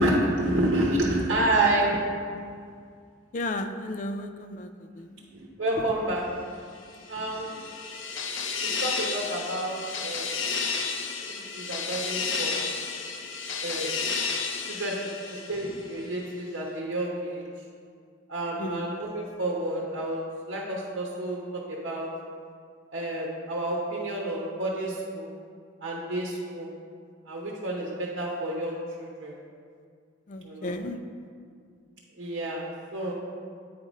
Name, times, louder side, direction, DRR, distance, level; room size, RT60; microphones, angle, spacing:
voice 1, 0.0-2.0 5.3-6.2 7.1-7.7 8.6-10.4 11.3-12.7 13.6-13.9 14.7-17.5 18.3-20.2 20.5-22.1 22.9-25.3 25.8-26.7 27.3-29.4 30.4-30.8 32.2-33.1, right 1 dB, 65° right, -3 dB, 1.0 m, -29 dB
voice 2, 3.3-4.7 5.0-5.2 18.6-18.8 30.3-31.0, left 1 dB, 40° left, 8 dB, 0.4 m, -33 dB
sound 1, 6.9-16.0, left 5 dB, 80° left, 0.6 m, -32 dB
8.6 x 3.9 x 5.0 m, 2.2 s
head